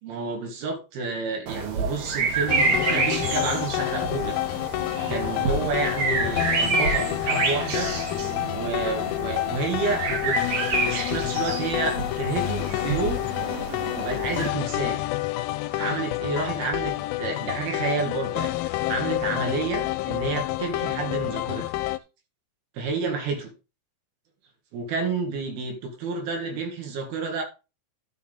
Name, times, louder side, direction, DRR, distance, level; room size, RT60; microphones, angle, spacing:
voice 1, 0.0-4.7 5.1-7.9 8.5-10.5 10.9-13.3 14.0-15.0 15.7-21.7 22.8-23.5 24.7-27.4, right 4 dB, 90° right, 3.7 m, -30 dB
sound 1, 1.5-14.5, right 4 dB, 55° right, 2.7 m, -28 dB
sound 2, 2.5-22.0, left 17 dB, 80° left, 2.3 m, -28 dB
12.0 x 5.9 x 3.8 m
omnidirectional pair, 4.3 m